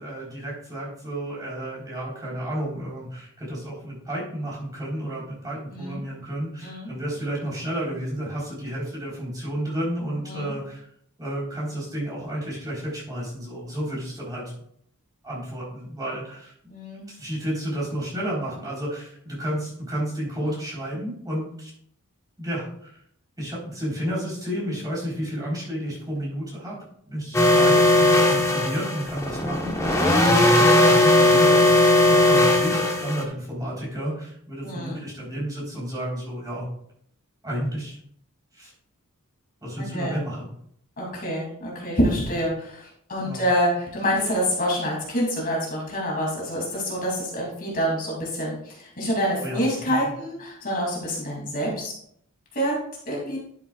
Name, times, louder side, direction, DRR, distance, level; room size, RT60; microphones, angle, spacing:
voice 1, 0.0-10.9 11.2-14.5 15.2-16.5 17.1-21.7 22.4-23.0 23.4-26.8 27.1-30.0 30.2-31.7 32.1-36.7 37.4-38.0 38.5-38.7 39.6-40.5 43.2-43.4 49.4-50.1, right 1 dB, 15° right, -6 dB, 3.9 m, -31 dB
voice 2, 16.7-17.0 30.1-30.4 34.6-35.0 39.8-40.2 41.0-51.9 52.5-52.7 53.1-53.4, equal, 40° left, -2 dB, 2.8 m, -27 dB
sound 1, 27.3-33.2, left 1 dB, 15° left, 1.1 m, -18 dB
11.5 x 7.2 x 2.4 m, 0.67 s
head